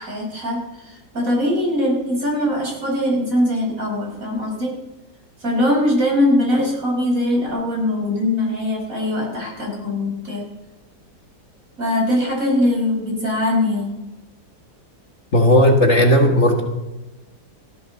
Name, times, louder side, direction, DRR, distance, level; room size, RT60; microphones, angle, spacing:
voice 1, 0.0-4.8 5.4-10.5 11.8-14.0, left 1 dB, 50° right, -2 dB, 6.0 m, -21 dB
voice 2, 15.3-16.6, equal, 40° left, 3 dB, 2.0 m, -14 dB
19.5 x 14.5 x 4.1 m, 1.0 s
omnidirectional pair, 1.8 m